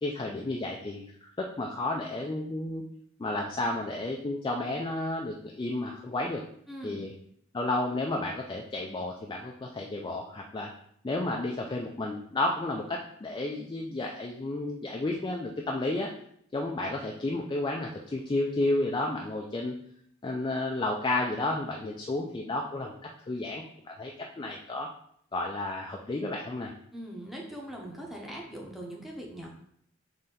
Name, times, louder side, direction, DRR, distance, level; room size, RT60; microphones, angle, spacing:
voice 1, 0.0-2.9 3.2-6.4 6.8-7.1 7.5-10.7 11.0-16.1 16.5-19.7 20.2-22.9 23.3-24.1 24.4-24.9 25.3-26.7, left 2 dB, 20° left, 0 dB, 0.3 m, -32 dB
voice 2, 6.7-7.1 26.9-29.5, right 1 dB, ahead, -2 dB, 0.7 m, -41 dB
4.1 x 3.3 x 3.7 m, 0.68 s
head